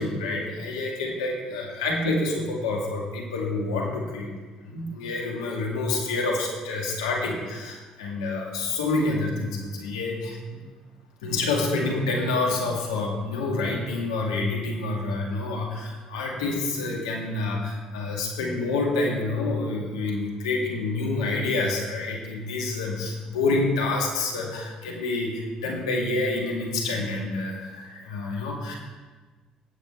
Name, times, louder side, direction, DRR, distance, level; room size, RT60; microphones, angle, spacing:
voice 1, 0.0-4.3 4.6-10.6 11.2-28.7, left 2 dB, 85° left, -1 dB, 2.1 m, -28 dB
17.0 x 7.8 x 3.5 m, 1.3 s
hypercardioid pair, 55°, 3 cm